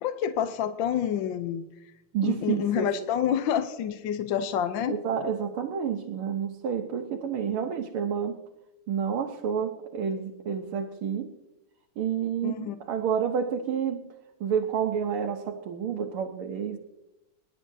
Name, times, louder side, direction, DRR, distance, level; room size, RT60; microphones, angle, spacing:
voice 1, 0.0-1.6 2.2-5.3 12.4-12.8, left 9 dB, 70° left, 10 dB, 1.3 m, -28 dB
voice 2, 2.1-2.9 4.9-8.4 8.9-11.3 12.0-14.1 14.4-16.8, right 7 dB, 80° right, 3 dB, 1.8 m, -29 dB
27.0 x 11.0 x 2.7 m, 0.94 s
omnidirectional pair, 2.4 m